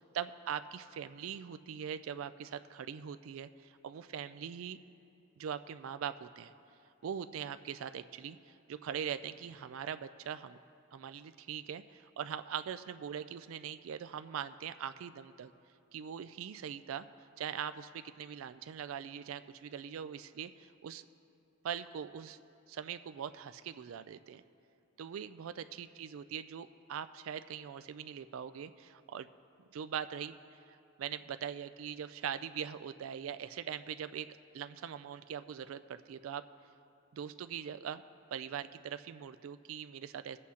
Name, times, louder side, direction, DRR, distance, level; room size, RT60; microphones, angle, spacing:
voice 1, 0.1-4.8 5.4-6.5 7.0-10.6 10.9-15.5 15.9-17.1 17.4-21.1 21.6-22.4 22.7-24.4 25.0-29.3 29.7-30.4 30.7-34.3 34.5-36.4 37.1-38.0 38.3-40.4, right 8 dB, 85° right, 12 dB, 0.3 m, -41 dB
19.5 x 8.3 x 2.8 m, 2.6 s
head